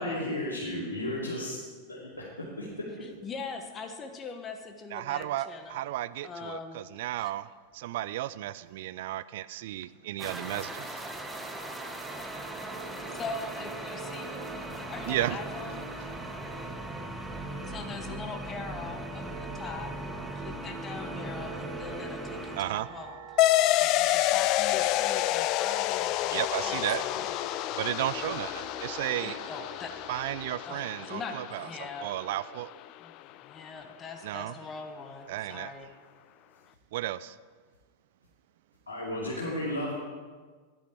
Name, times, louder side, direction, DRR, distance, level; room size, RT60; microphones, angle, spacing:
voice 1, 0.0-2.9 38.9-39.9, left 1 dB, 75° left, -6 dB, 2.7 m, -34 dB
voice 2, 3.2-5.8 6.2-6.8 7.2-7.3 13.1-15.8 17.7-19.2 19.5-19.9 20.3-23.2 23.7-27.3 29.2-29.9 30.6-32.1 33.0-33.1 33.4-35.9, left 4 dB, 25° left, 6 dB, 1.1 m, -41 dB
voice 3, 4.9-7.5 7.7-11.0 15.0-15.5 22.5-22.9 26.3-27.0 27.7-29.4 30.1-32.7 34.2-34.6 35.3-35.7 36.9-37.4, right 14 dB, 55° right, 16 dB, 0.4 m, -33 dB
sound 1, 10.2-22.6, right 2 dB, 5° right, 1.1 m, -38 dB
sound 2, 22.3-30.5, right 7 dB, 35° right, 1.4 m, -48 dB
sound 3, 23.4-32.4, left 16 dB, 40° left, 0.3 m, -28 dB
13.0 x 10.5 x 4.6 m, 1.5 s
figure-of-eight pair, 90°, 0 cm